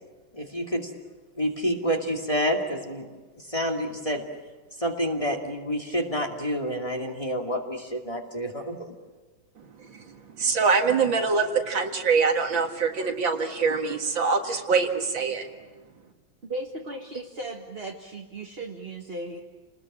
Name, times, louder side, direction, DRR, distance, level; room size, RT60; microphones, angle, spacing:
voice 1, 0.3-0.9 1.4-3.1 3.5-4.2 4.8-8.9, equal, 15° left, 1 dB, 2.4 m, -28 dB
voice 2, 9.6-15.5, right 5 dB, 60° right, 4 dB, 2.5 m, -24 dB
voice 3, 16.5-19.4, right 2 dB, 30° right, 1 dB, 1.7 m, -36 dB
29.5 x 20.5 x 8.8 m, 1.3 s
omnidirectional pair, 2.4 m